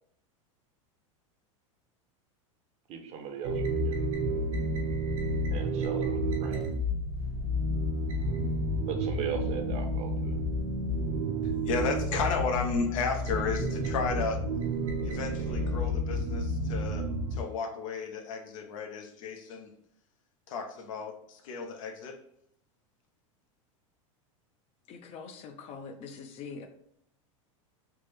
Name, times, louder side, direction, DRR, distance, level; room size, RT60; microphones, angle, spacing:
voice 1, 2.9-4.0 5.5-6.6 8.9-10.3, right 7 dB, 40° right, 5 dB, 0.6 m, -38 dB
sound 1, 3.4-17.4, equal, 75° right, 0.7 m, -30 dB
voice 2, 11.4-14.4 14.8-17.0 17.3-19.7 20.5-22.2, left 4 dB, 75° left, 4 dB, 0.6 m, -33 dB
voice 3, 24.9-26.7, left 5 dB, 40° left, 6 dB, 0.4 m, -43 dB
3.2 x 2.0 x 3.3 m, 0.68 s
supercardioid pair, 120°, 17 cm